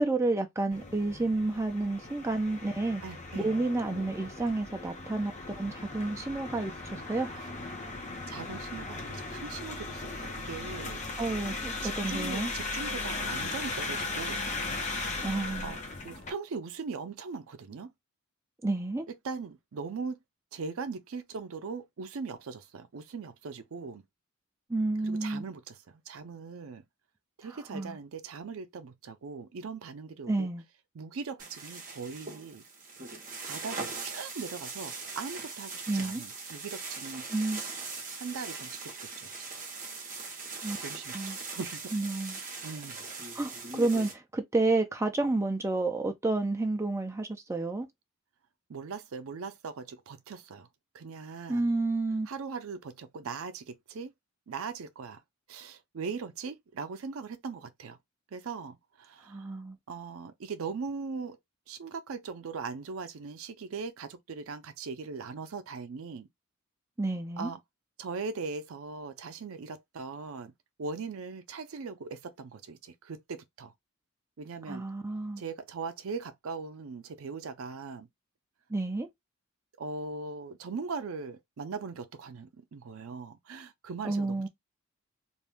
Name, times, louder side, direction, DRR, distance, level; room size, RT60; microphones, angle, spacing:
voice 1, 0.0-3.0 3.4-7.3 11.2-12.5 15.2-15.7 18.6-19.1 24.7-25.4 27.7-28.0 30.3-30.6 35.9-36.2 37.3-37.6 40.6-40.8 41.1-41.4 41.9-42.4 43.3-47.9 51.5-52.3 59.3-59.8 67.0-67.5 74.7-75.4 78.7-79.1 84.0-84.5, right 2 dB, 15° right, 0.4 m, -30 dB
sound 1, 0.7-16.3, left 3 dB, 35° left, 0.6 m, -37 dB
voice 2, 3.0-3.6 7.3-7.4 8.3-11.0 11.8-14.4 15.6-17.9 19.1-20.2 20.5-24.0 25.0-26.8 27.4-30.5 30.9-32.6 33.4-37.3 38.2-39.3 40.8-41.8 42.6-43.1 48.7-50.7 50.9-51.7 52.3-54.1 54.5-55.2 55.5-58.0 58.3-59.5 59.9-61.4 61.7-66.3 67.4-67.6 68.0-70.5 70.8-73.7 74.4-74.9 75.4-78.1 79.8-84.5, right 5 dB, 70° right, 0.5 m, -40 dB
sound 2, 31.4-44.1, right 4 dB, 35° right, 0.8 m, -40 dB
2.5 x 2.2 x 3.3 m
head